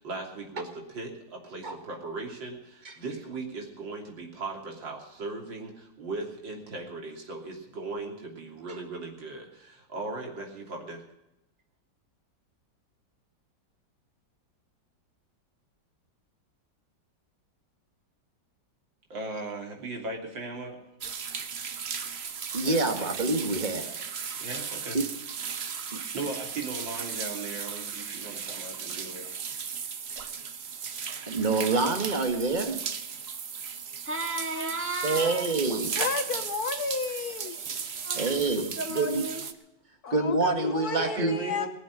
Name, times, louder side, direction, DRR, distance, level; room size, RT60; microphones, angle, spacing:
voice 1, 0.0-11.0 19.1-20.8 22.0-22.2 22.6-23.2 24.4-25.0 25.5-25.8 26.1-29.3 41.0-41.7, right 3 dB, 80° right, 0 dB, 3.8 m, -38 dB
sound 1, 21.0-39.5, right 6 dB, 45° right, 1.0 m, -36 dB
voice 2, 22.5-23.9 24.9-25.0 31.3-32.8 35.0-36.0 38.2-39.2 40.1-41.4, right 3 dB, 25° right, 6 dB, 1.9 m, -27 dB
voice 3, 34.0-35.6 37.6-39.5, right 2 dB, 5° right, 4 dB, 1.8 m, -35 dB
voice 4, 36.0-37.6 40.0-41.7, left 5 dB, 60° left, 9 dB, 1.4 m, -32 dB
19.5 x 7.4 x 9.8 m, 0.87 s
omnidirectional pair, 2.0 m